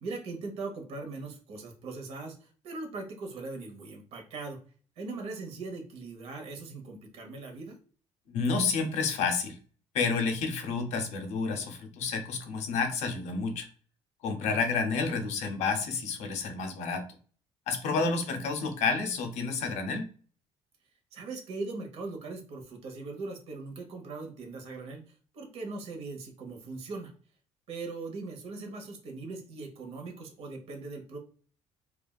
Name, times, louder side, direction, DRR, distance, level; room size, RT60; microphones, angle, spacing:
voice 1, 0.0-4.6 5.0-7.8 14.4-14.7 17.9-18.5 21.1-27.1 27.7-31.2, right 3 dB, 60° right, 3 dB, 0.9 m, -40 dB
voice 2, 8.3-9.6 9.9-13.7 14.2-17.1 17.7-20.1, left 4 dB, 70° left, 6 dB, 0.6 m, -30 dB
3.4 x 2.2 x 2.2 m, 0.42 s
cardioid pair, 165°, 12 cm